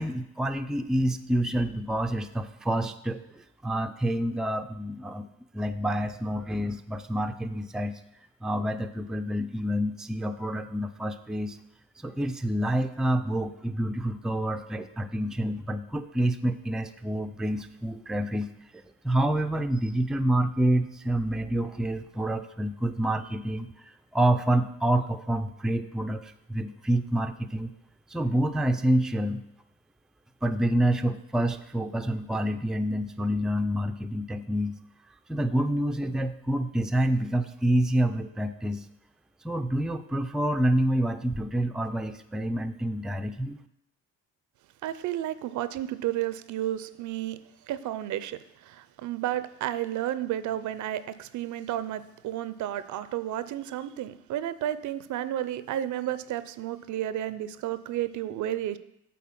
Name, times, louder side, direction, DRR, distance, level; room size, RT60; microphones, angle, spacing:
voice 1, 0.0-5.3 5.5-8.0 8.4-11.6 12.0-27.7 28.1-29.4 30.4-34.8 35.3-38.8 39.4-43.6, right 1 dB, ahead, 8 dB, 0.4 m, -28 dB
voice 2, 44.8-47.4 47.7-58.8, right 12 dB, 75° right, 14 dB, 0.5 m, -32 dB
8.3 x 4.1 x 5.8 m, 0.80 s
cardioid pair, 90°, 30 cm